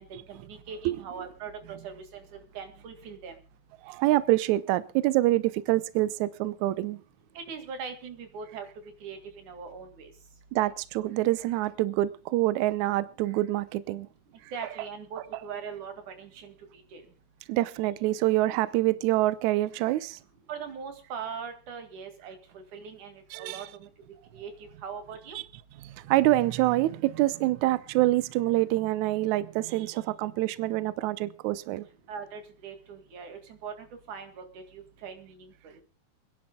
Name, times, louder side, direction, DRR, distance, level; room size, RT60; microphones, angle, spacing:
voice 1, 0.0-3.4 7.3-8.7 9.0-10.1 14.5-17.0 20.5-23.9 24.3-25.4 32.1-35.8, right 6 dB, 60° right, 3.3 m, -41 dB
voice 2, 3.8-7.0 10.5-14.1 17.5-20.2 23.3-23.6 25.8-31.9, right 16 dB, 90° right, 1.6 m, -26 dB
28.0 x 10.5 x 2.2 m
omnidirectional pair, 4.2 m